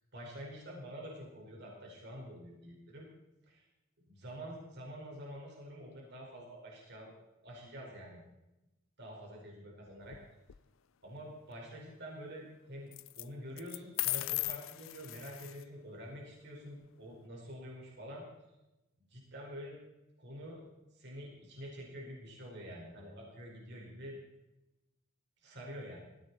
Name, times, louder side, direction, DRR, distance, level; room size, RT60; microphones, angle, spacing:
voice 1, 0.1-3.1 3.5-3.7 4.1-7.1 7.4-8.2 9.0-10.2 11.0-12.9 13.1-18.2 19.0-19.8 20.2-20.6 20.9-24.2 25.4-26.0, equal, 55° right, -2 dB, 5.0 m, -47 dB
sound 1, 10.0-10.6 12.9-13.2 13.6-15.6, left 19 dB, 75° left, 0.5 m, -37 dB
19.5 x 16.0 x 4.3 m, 0.97 s
head